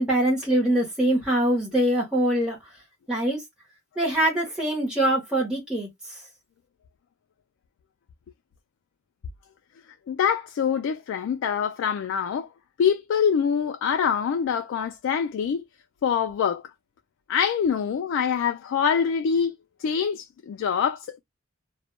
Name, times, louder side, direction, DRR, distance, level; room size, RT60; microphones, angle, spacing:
voice 1, 0.0-2.6 3.1-3.4 4.0-5.9, right 1 dB, 5° right, 0.8 m, -23 dB
voice 2, 10.1-12.5 12.8-15.6 16.0-16.6 17.3-19.5 19.8-21.2, left 7 dB, 65° left, 0.3 m, -25 dB
2.1 x 2.1 x 3.0 m
head